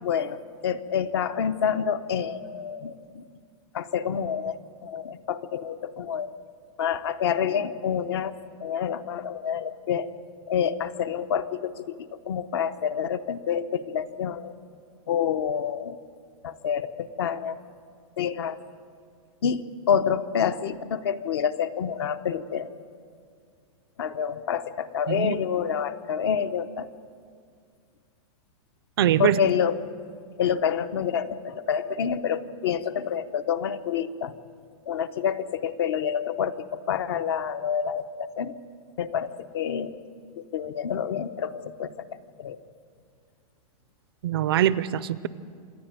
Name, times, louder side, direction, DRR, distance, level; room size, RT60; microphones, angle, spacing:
voice 1, 0.0-3.2 3.7-6.3 6.8-8.3 8.6-10.1 10.5-12.0 12.3-14.5 15.1-16.0 16.4-17.6 18.2-18.6 19.4-22.7 24.0-26.9 29.2-29.8 30.4-34.3 34.9-38.6 39.0-40.0 40.4-41.9 42.4-42.6, left 8 dB, 45° left, 13 dB, 0.8 m, -28 dB
voice 2, 29.0-29.4 44.2-45.3, right 11 dB, 45° right, 17 dB, 0.5 m, -23 dB
27.0 x 10.5 x 9.1 m, 2.2 s
supercardioid pair, 180°, 18 cm